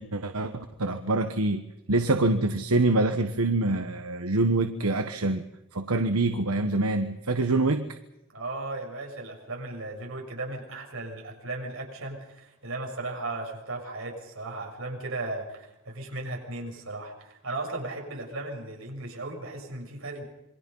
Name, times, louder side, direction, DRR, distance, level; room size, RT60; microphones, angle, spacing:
voice 1, 0.0-1.6 1.9-5.4 5.7-7.9, right 2 dB, 85° right, 8 dB, 1.3 m, -25 dB
voice 2, 8.3-20.2, right 2 dB, 65° right, 1 dB, 7.1 m, -36 dB
27.5 x 23.5 x 5.6 m, 0.90 s
head